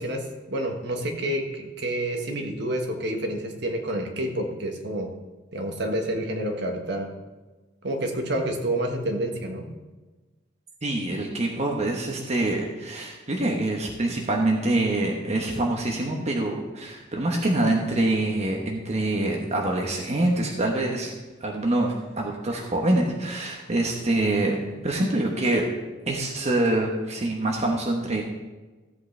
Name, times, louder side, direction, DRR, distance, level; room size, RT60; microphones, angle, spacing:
voice 1, 0.0-5.1 5.5-7.1 7.8-9.7, right 1 dB, 65° right, 3 dB, 1.5 m, -28 dB
voice 2, 10.8-21.1 21.4-24.6 24.8-25.6 26.1-28.2, right 2 dB, 35° right, 0 dB, 1.1 m, -25 dB
15.0 x 8.1 x 3.3 m, 1.2 s
head